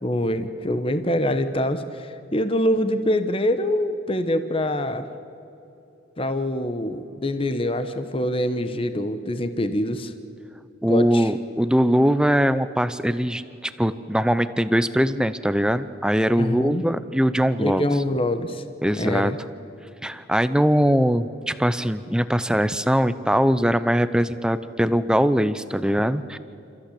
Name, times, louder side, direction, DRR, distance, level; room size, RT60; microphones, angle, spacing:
voice 1, 0.0-5.1 6.2-10.1 10.9-11.3 16.4-16.9 17.6-18.6 19.0-19.4, left 1 dB, 25° left, 10 dB, 1.0 m, -24 dB
voice 2, 10.8-17.8 18.8-19.3 20.0-26.4, equal, 5° right, 13 dB, 0.6 m, -21 dB
29.0 x 14.5 x 8.5 m, 2.8 s
head